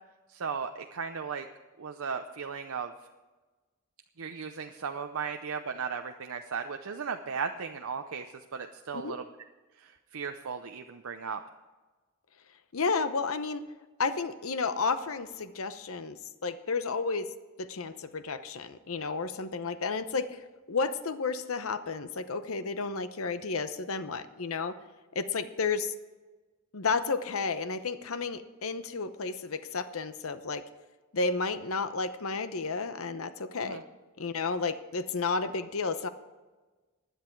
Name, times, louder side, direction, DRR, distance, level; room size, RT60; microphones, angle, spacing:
voice 1, 0.3-1.5 1.8-2.9 4.2-9.2 9.8-11.4 33.6-33.8, right 6 dB, 70° right, 6 dB, 0.6 m, -36 dB
voice 2, 12.7-13.7 14.0-17.3 17.6-20.4 20.7-24.7 25.1-25.9 26.7-30.6 31.1-33.8 34.2-36.1, left 4 dB, 70° left, 11 dB, 0.8 m, -32 dB
16.0 x 10.0 x 4.6 m, 1.3 s
head